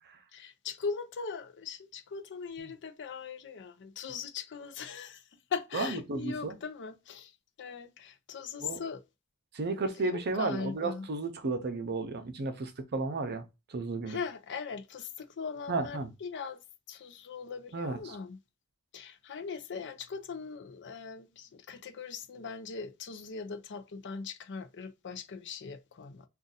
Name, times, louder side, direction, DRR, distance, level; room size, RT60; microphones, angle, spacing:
voice 1, 0.3-5.2 5.5-7.3 7.6-9.0 10.0-11.1 14.1-16.6 16.9-18.4 18.9-26.2, left 5 dB, 55° left, 0.5 m, -40 dB
voice 2, 5.7-6.6 8.6-8.8 9.5-14.2 15.7-16.1 17.7-18.2, right 3 dB, 50° right, 0.6 m, -33 dB
2.6 x 2.4 x 3.9 m
head